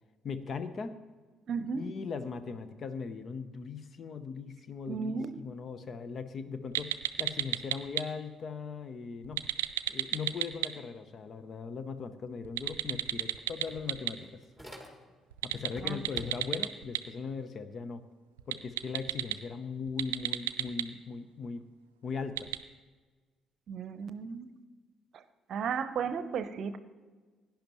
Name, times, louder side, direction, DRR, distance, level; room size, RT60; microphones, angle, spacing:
voice 1, 0.2-0.9 1.7-9.5 9.9-14.4 15.4-18.0 18.5-21.6 22.0-22.5, left 5 dB, 50° left, 12 dB, 0.8 m, -39 dB
voice 2, 1.5-1.8 4.9-5.4 15.8-16.0 23.7-24.5 25.1-25.2 25.5-26.8, right 6 dB, 55° right, 12 dB, 0.7 m, -34 dB
sound 1, 6.7-8.0 9.2-10.7 12.4-14.1 15.3-17.0 18.4-19.3 19.9-20.8 22.4-22.6, right 14 dB, 80° right, 0.4 m, -30 dB
sound 2, 12.6-12.7 13.0-15.3 15.6-16.7, equal, 15° left, 3.1 m, -50 dB
16.5 x 10.5 x 3.1 m, 1.4 s
figure-of-eight pair, 50°, 0 cm